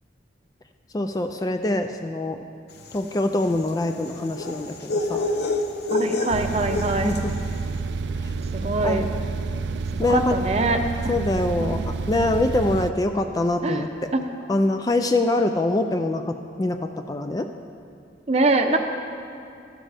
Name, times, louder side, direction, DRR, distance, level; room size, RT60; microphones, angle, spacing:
voice 1, 0.9-2.4 2.9-5.3 7.0-7.2 8.2-8.3 8.8-9.1 10.0-10.4 11.1-11.8 12.1-14.1 14.5-17.5, left 2 dB, 20° left, 7 dB, 0.3 m, -24 dB
sound 1, 2.8-7.4, left 2 dB, 60° left, 0.7 m, -28 dB
voice 2, 5.9-7.1 8.5-9.0 10.1-11.1 11.6-11.7 13.6-13.9 14.1-14.2 18.3-18.8, right 2 dB, 35° right, 5 dB, 0.7 m, -23 dB
sound 2, 6.3-12.9, right 4 dB, 70° right, 0.4 m, -29 dB
13.5 x 12.5 x 3.4 m, 2.5 s
head